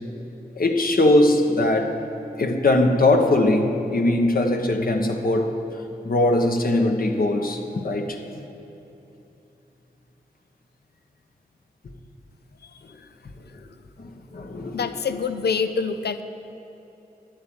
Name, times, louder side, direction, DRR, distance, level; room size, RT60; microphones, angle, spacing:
voice 1, 0.5-2.0 2.4-5.6 6.0-8.2 14.0-14.9, left 2 dB, 60° left, 3 dB, 1.3 m, -21 dB
voice 2, 14.7-16.2, left 5 dB, 80° left, 10 dB, 0.6 m, -25 dB
11.0 x 8.1 x 8.8 m, 2.9 s
cardioid pair, 60°, 17 cm